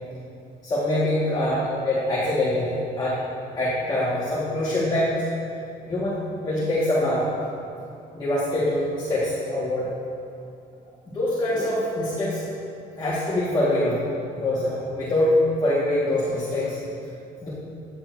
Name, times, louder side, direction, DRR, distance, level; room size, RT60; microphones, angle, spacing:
voice 1, 0.6-3.2 3.5-5.2 5.8-6.2 6.4-7.3 8.1-9.9 11.1-12.4 13.0-14.0 14.3-16.8 17.4-17.5, left 1 dB, 25° left, -8 dB, 1.5 m, -24 dB
9.5 x 7.3 x 2.6 m, 2.7 s
cardioid pair, 110°, 17 cm